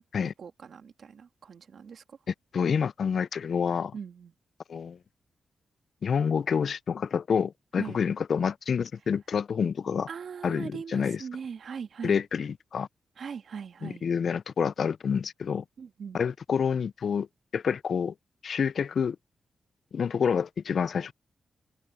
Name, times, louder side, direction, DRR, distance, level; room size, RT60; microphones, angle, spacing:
voice 1, 0.0-2.2 3.9-4.3 7.8-8.0 10.1-12.2 13.2-14.0 15.8-16.2, right 6 dB, 65° right, 2.0 m, -40 dB
voice 2, 2.5-3.9 4.7-5.0 6.0-10.1 10.4-11.2 12.0-12.9 13.8-15.6 16.1-17.3 17.5-18.1 18.4-19.2 19.9-21.1, left 6 dB, 60° left, 0.3 m, -28 dB
wide cardioid pair, 110°, 0 cm